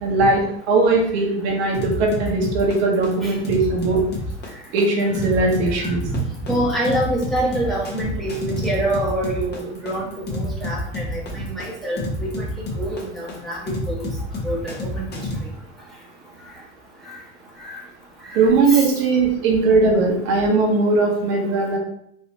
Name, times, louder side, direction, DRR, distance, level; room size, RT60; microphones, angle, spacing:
voice 1, 0.0-4.0 4.7-6.0 18.3-21.8, right 3 dB, 60° right, 0 dB, 1.0 m, -19 dB
sound 1, 1.7-15.4, left 2 dB, 30° left, 1.0 m, -29 dB
voice 2, 6.5-12.3 12.8-14.0 14.4-15.1 17.7-17.8 18.7-18.8, right 1 dB, ahead, -6 dB, 1.1 m, -26 dB
3.2 x 2.8 x 2.8 m, 0.71 s
hypercardioid pair, 95°, 35 cm